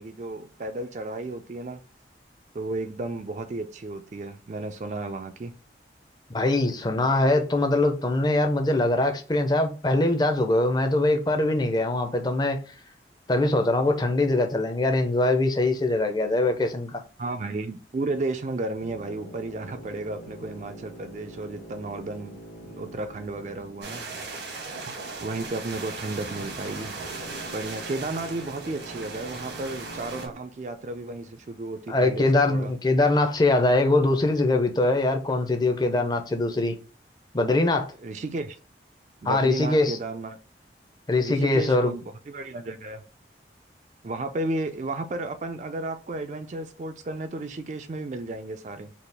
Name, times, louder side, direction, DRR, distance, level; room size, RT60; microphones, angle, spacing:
voice 1, 0.0-1.8 2.5-5.5 17.2-24.0 25.2-26.9 27.4-32.7 38.0-38.6 39.2-40.4 41.2-43.0 44.0-48.9, right 2 dB, 40° right, 0.3 m, -33 dB
voice 2, 6.3-12.6 13.3-17.0 31.9-36.8 37.3-37.9 39.2-40.0 41.1-41.9, left 2 dB, 25° left, 0.5 m, -22 dB
sound 1, 18.8-25.1 27.0-30.3, right 1 dB, 65° left, 1.0 m, -45 dB
sound 2, 23.8-30.3, right 3 dB, 75° right, 1.1 m, -37 dB
4.1 x 2.3 x 3.4 m
head